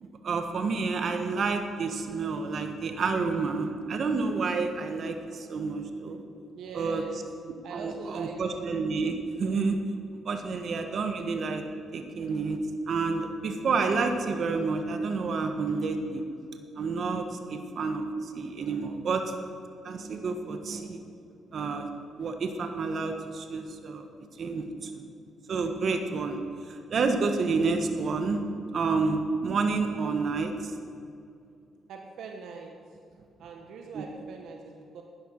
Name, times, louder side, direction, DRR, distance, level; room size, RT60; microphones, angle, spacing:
voice 1, 0.0-6.2 6.7-7.0 7.7-9.8 10.2-11.6 11.9-12.6 12.9-16.2 16.7-19.2 19.8-21.0 21.5-21.9 22.2-24.1 24.4-25.0 25.5-26.4 26.7-28.4 28.7-30.7 33.9-34.0, right 4 dB, 55° right, 5 dB, 1.3 m, -29 dB
voice 2, 6.5-7.3 7.6-8.6 10.7-10.8 31.9-32.8 33.4-35.0, right 4 dB, 75° right, 3 dB, 1.0 m, -41 dB
11.0 x 10.0 x 6.4 m, 2.5 s
cardioid pair, 90°, 0 cm